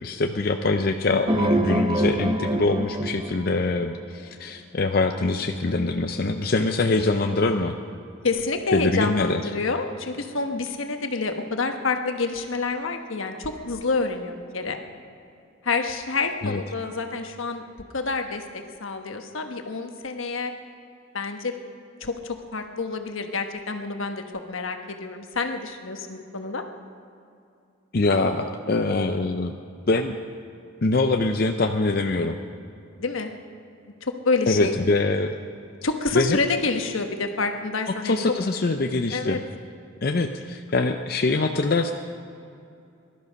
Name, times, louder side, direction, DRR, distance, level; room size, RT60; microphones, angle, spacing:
voice 1, 0.0-7.7 8.7-9.4 16.4-16.6 27.9-29.5 29.9-30.2 30.8-32.3 34.5-35.3 36.1-36.4 38.0-39.4 40.0-41.9, left 3 dB, 50° left, 5 dB, 0.6 m, -23 dB
sound 1, 1.3-4.1, right 1 dB, 20° right, 0.5 m, -25 dB
voice 2, 7.3-7.6 8.2-14.8 15.6-17.6 17.9-20.5 21.1-21.5 22.0-26.6 33.0-33.3 34.0-34.7 35.8-38.2 39.1-39.4, left 3 dB, 80° left, 5 dB, 1.2 m, -28 dB
18.5 x 12.5 x 5.3 m, 2.5 s
head